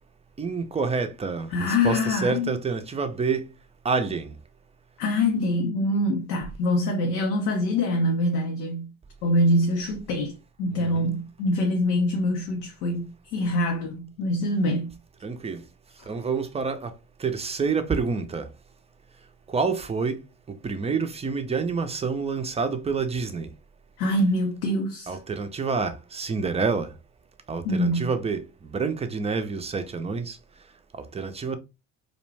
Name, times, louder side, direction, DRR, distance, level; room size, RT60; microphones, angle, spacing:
voice 1, 0.4-3.5 3.8-4.3 10.7-11.1 15.2-15.6 16.1-16.9 17.2-18.5 19.5-20.2 20.5-23.5 25.1-26.9 27.5-30.4 31.0-31.6, right 5 dB, 15° right, 0.4 m, -28 dB
voice 2, 1.5-2.6 5.0-8.9 9.2-14.9 24.0-25.2 27.6-28.1, left 1 dB, 90° left, 0.6 m, -25 dB
2.4 x 2.1 x 3.2 m
hypercardioid pair, 55°, 45 cm